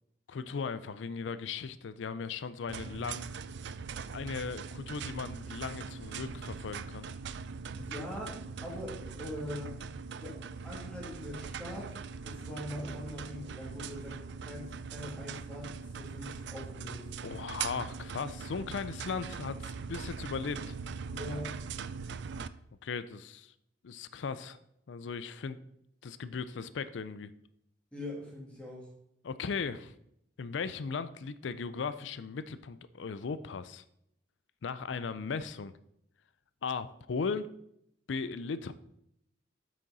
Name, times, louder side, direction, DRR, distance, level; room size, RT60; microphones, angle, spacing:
voice 1, 0.3-3.3 4.1-7.1 17.2-20.8 22.8-23.5 23.8-24.6 24.9-25.6 26.0-27.3 29.2-29.9 30.4-33.8 34.6-35.7 36.6-37.5 38.1-38.7, left 5 dB, 75° left, 14 dB, 0.4 m, -37 dB
sound 1, 2.7-22.5, right 5 dB, 65° right, 0.4 m, -41 dB
voice 2, 7.7-9.8 10.2-11.9 12.2-17.1 21.0-21.5 27.9-28.9, left 1 dB, 5° left, -4 dB, 2.7 m, -42 dB
8.5 x 6.3 x 4.1 m, 0.75 s
head